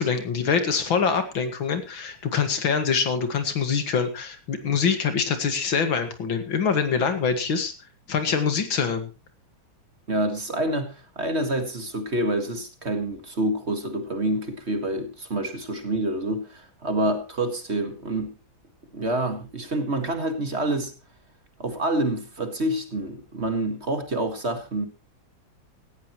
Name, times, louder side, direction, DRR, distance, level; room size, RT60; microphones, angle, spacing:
voice 1, 0.0-7.7 8.1-9.1, left 6 dB, 80° left, 2.7 m, -24 dB
voice 2, 10.1-18.3 18.9-20.9 21.6-24.9, right 1 dB, 35° right, 2.0 m, -27 dB
17.5 x 14.0 x 3.1 m
omnidirectional pair, 2.1 m